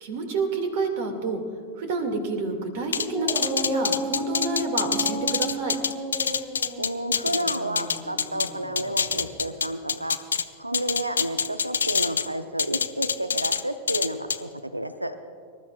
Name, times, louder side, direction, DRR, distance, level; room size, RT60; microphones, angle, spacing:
voice 1, 0.0-1.4 1.8-5.7, right 3 dB, 50° right, 5 dB, 2.2 m, -29 dB
sound 1, 2.9-8.5 8.8-10.4 10.7-12.3 12.6-13.6 13.9-14.4, left 6 dB, 70° left, 0.5 m, -25 dB
Dog, 2.9-9.5, right 1 dB, 15° right, 3.3 m, -33 dB
voice 2, 6.8-10.2 10.6-15.2, right 1 dB, 85° right, 10 dB, 0.6 m, -31 dB
26.0 x 13.0 x 2.4 m, 2.2 s
figure-of-eight pair, 90°, 0 cm